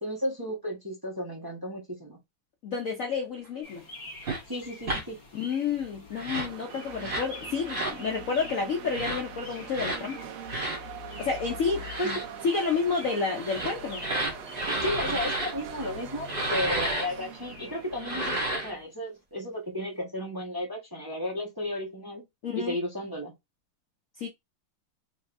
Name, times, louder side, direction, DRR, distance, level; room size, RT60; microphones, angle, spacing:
voice 1, 0.0-2.2 4.5-5.2 12.0-12.2 14.8-22.2 22.5-23.3, left 1 dB, 15° right, 0.9 m, -33 dB
voice 2, 2.6-3.8 5.3-10.2 11.2-12.2 12.4-14.0 22.4-22.8 24.2-24.3, left 5 dB, 80° left, 0.7 m, -30 dB
sound 1, 3.6-18.8, left 3 dB, 40° left, 2.3 m, -45 dB
sound 2, 4.2-4.4 4.8-5.0 6.1-6.5 7.0-7.3 7.7-8.0 8.9-9.2 9.7-10.0 10.5-10.8 11.8-12.2 13.3-15.5 16.3-17.1 17.9-18.7, right 1 dB, 30° right, 1.2 m, -31 dB
sound 3, 6.3-18.6, right 9 dB, 80° right, 1.6 m, -43 dB
5.0 x 3.3 x 2.6 m
omnidirectional pair, 2.4 m